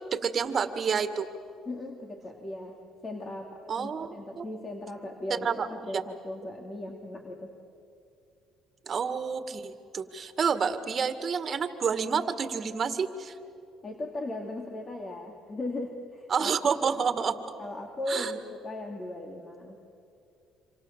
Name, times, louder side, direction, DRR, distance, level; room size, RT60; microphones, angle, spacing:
voice 1, 0.1-1.3 3.7-4.4 5.3-5.7 5.9-6.0 8.9-13.3 16.3-17.3 18.1-18.3, right 6 dB, 45° right, 10 dB, 2.0 m, -29 dB
voice 2, 1.7-7.5 13.8-16.5 16.9-17.1 17.6-19.8, left 1 dB, 30° left, 2 dB, 2.8 m, -38 dB
27.5 x 26.5 x 7.5 m, 2.5 s
supercardioid pair, 80°, 0 cm